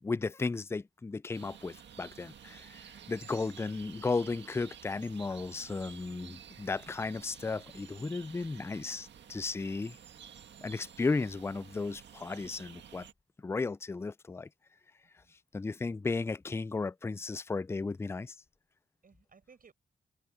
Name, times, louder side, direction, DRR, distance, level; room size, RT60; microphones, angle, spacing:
voice 1, 0.0-10.0 10.6-13.1 13.4-14.5 15.5-18.4, left 3 dB, 15° left, 0.3 m, -35 dB
sound 1, 1.3-13.1, right 8 dB, 85° right, 1.7 m, -52 dB
voice 2, 2.9-3.4 9.9-10.0 15.0-15.3 19.0-19.7, right 5 dB, 55° right, 6.4 m, -61 dB
cardioid pair, 80°, 18 cm